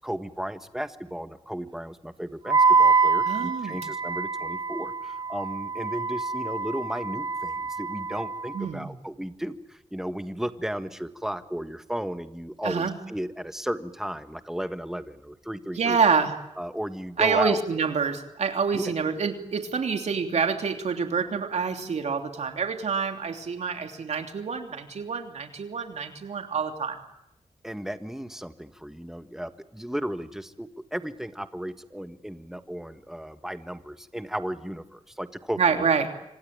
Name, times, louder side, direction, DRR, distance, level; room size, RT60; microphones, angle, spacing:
voice 1, 0.0-16.0 16.6-17.6 18.7-19.0 27.6-35.9, equal, 5° right, 10 dB, 1.6 m, -34 dB
Wind instrument woodwind instrument, 2.5-8.6, right 4 dB, 40° right, 1.1 m, -25 dB
voice 2, 3.2-3.8 8.5-8.9 12.6-12.9 15.8-16.3 17.2-27.0 35.6-36.1, right 5 dB, 80° right, 5 dB, 3.1 m, -27 dB
26.5 x 25.5 x 8.9 m, 0.81 s
wide cardioid pair, 105°, 11 cm